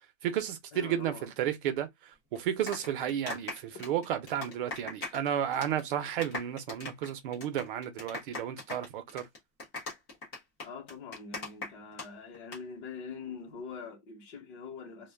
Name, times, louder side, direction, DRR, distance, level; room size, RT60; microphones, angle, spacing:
voice 1, 0.2-9.3, right 10 dB, 50° right, 0.7 m, -33 dB
voice 2, 0.7-1.3 10.6-15.1, left 5 dB, 45° left, 0.9 m, -44 dB
sound 1, 2.3-5.3 5.5-5.8 6.1-12.1 12.3-12.6, left 3 dB, 10° left, 0.3 m, -40 dB
2.3 x 2.2 x 3.3 m
supercardioid pair, 175°, 34 cm